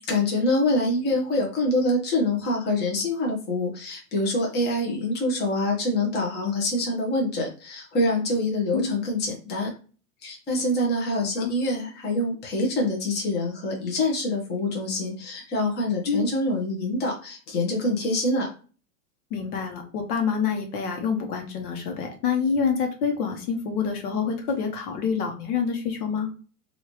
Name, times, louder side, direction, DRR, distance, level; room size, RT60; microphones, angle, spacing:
voice 1, 0.1-9.7 10.2-18.5, left 1 dB, 20° left, -1 dB, 1.0 m, -25 dB
voice 2, 11.2-11.5 16.1-16.3 19.3-26.3, left 6 dB, 75° left, 3 dB, 1.2 m, -27 dB
3.1 x 2.7 x 3.0 m, 0.37 s
supercardioid pair, 140°, 46 cm